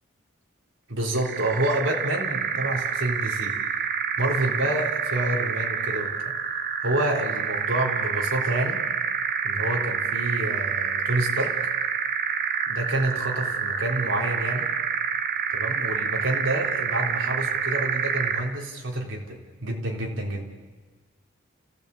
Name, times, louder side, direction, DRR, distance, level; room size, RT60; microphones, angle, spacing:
voice 1, 0.9-3.6 4.2-6.3 6.8-8.8 9.4-11.5 12.7-14.7 15.5-20.5, right 1 dB, 90° right, 1 dB, 3.7 m, -28 dB
sound 1, 1.1-18.6, right 6 dB, 50° right, 1.1 m, -28 dB
29.5 x 16.5 x 8.5 m, 1.4 s
head